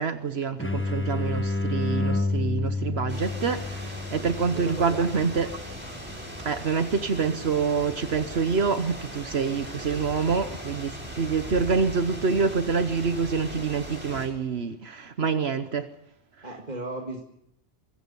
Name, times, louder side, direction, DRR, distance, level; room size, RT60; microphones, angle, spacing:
voice 1, 0.0-5.5 6.4-15.9, right 5 dB, 70° right, 1.3 m, -26 dB
sound 1, 0.6-6.1, left 3 dB, 10° left, 1.2 m, -30 dB
sound 2, 3.1-14.3, equal, 10° right, 7.8 m, -39 dB
voice 2, 4.5-5.3 16.4-17.2, right 2 dB, 40° right, 2.2 m, -36 dB
25.5 x 23.0 x 5.5 m
omnidirectional pair, 1.1 m